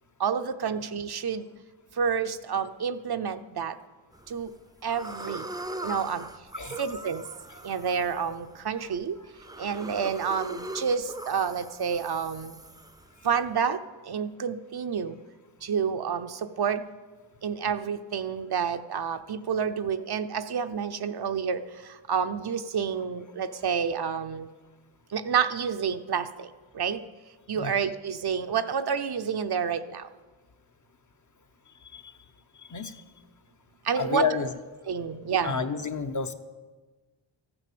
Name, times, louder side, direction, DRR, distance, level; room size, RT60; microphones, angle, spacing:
voice 1, 0.2-1.4 2.0-3.7 4.3-4.5 4.8-5.5 5.8-6.3 6.8-7.2 7.6-9.2 9.6-12.6 13.2-13.8 14.1-15.2 15.6-16.8 17.4-21.6 22.1-24.5 25.1-26.5 26.7-27.0 27.5-30.1 33.9-34.2 34.9-35.6, right 7 dB, 55° right, 9 dB, 0.7 m, -29 dB
sound 1, 4.1-4.5 4.9-13.5, right 1 dB, 10° right, 0.5 m, -41 dB
voice 2, 31.8-32.2 32.6-33.0 33.9-34.5 35.4-36.3, left 5 dB, 40° left, 7 dB, 0.9 m, -30 dB
14.0 x 9.7 x 6.8 m, 1.4 s
wide cardioid pair, 90°, 46 cm